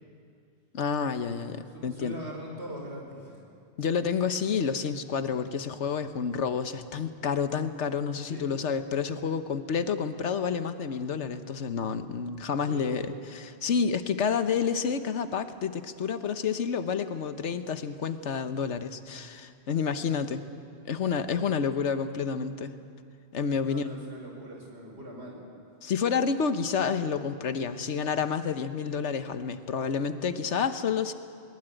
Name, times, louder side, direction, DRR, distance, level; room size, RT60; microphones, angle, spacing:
voice 1, 0.7-2.2 3.8-20.4 20.8-22.7 23.3-23.9 25.8-31.1, left 6 dB, 85° left, 10 dB, 1.4 m, -29 dB
voice 2, 1.7-3.4 8.2-8.5 12.7-13.1 23.6-25.4, right 1 dB, 70° right, 0 dB, 5.4 m, -41 dB
21.5 x 20.0 x 9.1 m, 2.4 s
omnidirectional pair, 1.2 m